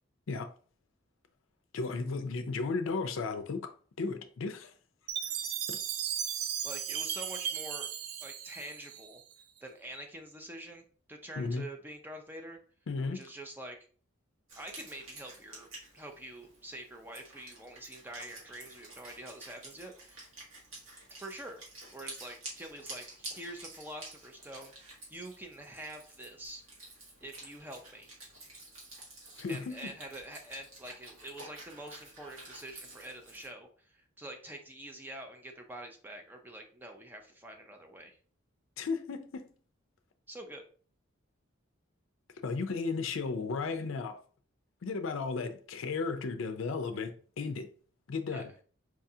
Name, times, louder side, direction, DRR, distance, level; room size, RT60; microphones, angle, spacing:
voice 1, 1.7-3.7 4.0-4.7 5.7-5.8 11.4-11.7 12.9-13.2 29.4-29.9 38.8-39.5 42.4-44.2 44.8-47.7 48.1-48.5, left 4 dB, 65° left, 0.4 m, -34 dB
Chime, 5.1-9.3, right 9 dB, 90° right, 0.4 m, -36 dB
voice 2, 6.6-7.9 8.2-9.2 9.6-10.8 11.1-12.6 13.1-13.8 14.6-20.3 21.2-21.6 21.9-26.6 27.2-28.1 29.5-38.2 40.3-40.6 48.3-48.5, right 1 dB, 10° right, 0.4 m, -46 dB
Wind instrument woodwind instrument, 14.5-33.5, right 2 dB, 70° right, 1.5 m, -50 dB
4.7 x 2.3 x 2.7 m
head